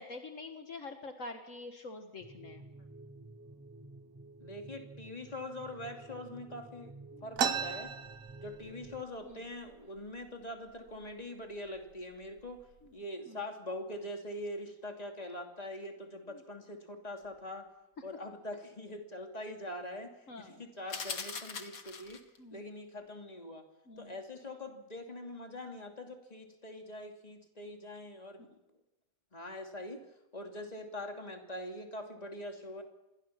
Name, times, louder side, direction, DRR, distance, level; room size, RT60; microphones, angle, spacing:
voice 1, 0.0-2.6 7.1-7.2 9.2-9.4 13.3-13.4 16.3-16.4 20.3-20.6 22.4-22.6 23.9-24.1, left 3 dB, 65° left, 5 dB, 2.1 m, -46 dB
sound 1, 2.2-9.0, right 2 dB, 15° right, 1.0 m, -52 dB
voice 2, 4.4-6.9 7.2-7.9 8.4-12.7 12.9-17.7 18.0-22.2 22.5-23.7 24.0-28.5 29.3-30.0 30.3-32.8, left 1 dB, 30° left, 3 dB, 3.0 m, -43 dB
sound 2, 7.4-9.0 9.3-9.4 9.7-10.3 10.9-11.0 11.7-11.9 12.4-12.8, right 7 dB, 75° right, 1.4 m, -35 dB
sound 3, 20.9-22.4, left 5 dB, 85° left, 2.2 m, -41 dB
28.0 x 22.0 x 5.9 m, 0.93 s
omnidirectional pair, 1.4 m